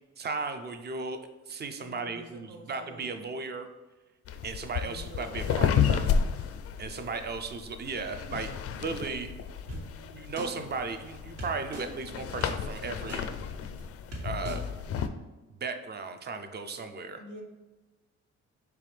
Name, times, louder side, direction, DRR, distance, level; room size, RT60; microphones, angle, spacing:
voice 1, 0.2-1.2 1.5-3.7 4.4-6.1 6.8-9.3 10.2-13.3 14.2-14.6 15.6-17.2, right 4 dB, 35° right, 8 dB, 0.5 m, -36 dB
voice 2, 1.8-3.2 4.8-6.5 9.6-10.5 17.2-17.4, right 1 dB, 80° right, 1 dB, 1.0 m, -48 dB
sound 1, 4.3-15.1, left 7 dB, 50° left, 0.4 m, -32 dB
sound 2, 9.7-9.8 10.4-10.5 11.4-11.8 12.4-12.5 13.1-13.2 13.8-13.9 14.1-14.6 15.0-15.1, right 1 dB, 60° right, 1.4 m, -38 dB
4.7 x 3.4 x 3.3 m, 1.2 s
cardioid pair, 90°, 30 cm